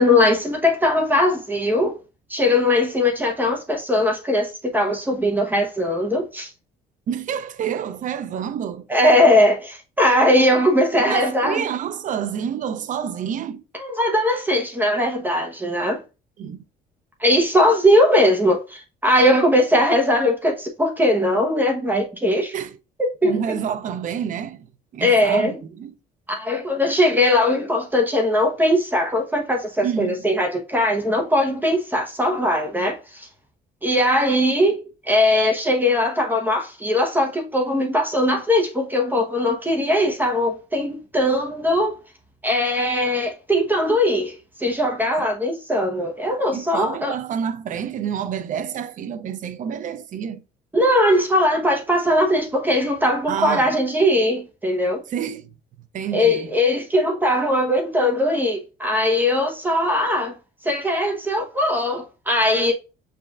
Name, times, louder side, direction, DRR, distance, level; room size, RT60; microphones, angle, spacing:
voice 1, 0.0-2.0 2.3-6.5 8.9-11.6 13.8-16.0 17.2-22.5 23.0-23.6 25.0-25.6 26.3-33.3 33.8-42.0 42.4-47.1 50.7-55.0 56.1-60.3 60.6-62.7, left 1 dB, 10° right, 1.0 m, -20 dB
voice 2, 7.1-8.9 11.1-13.6 16.4-16.6 22.5-22.8 23.2-26.0 29.8-30.2 46.5-50.4 53.3-53.7 55.1-55.5 55.8-56.6, right 8 dB, 50° right, 0.6 m, -28 dB
6.6 x 3.4 x 2.4 m
cardioid pair, 110°, 17 cm